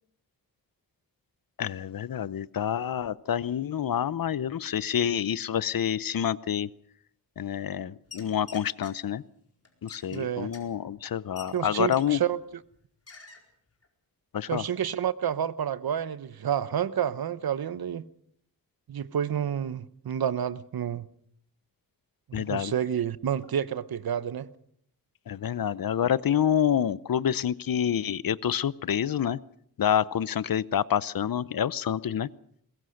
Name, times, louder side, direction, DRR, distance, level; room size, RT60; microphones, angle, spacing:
voice 1, 1.6-6.7 7.4-9.2 9.8-12.2 14.3-14.6 22.3-22.7 25.3-29.4 29.8-32.3, left 9 dB, 70° left, 0.8 m, -27 dB
sound 1, 8.0-8.9 9.6-12.3 12.6-12.8 13.1-13.4 13.8-13.9, left 4 dB, 40° left, 4.5 m, -48 dB
voice 2, 10.1-10.5 11.5-12.4 14.5-18.0 18.9-21.0 22.3-24.5, right 9 dB, 85° right, 1.0 m, -29 dB
22.0 x 21.0 x 6.5 m
wide cardioid pair, 95°, 36 cm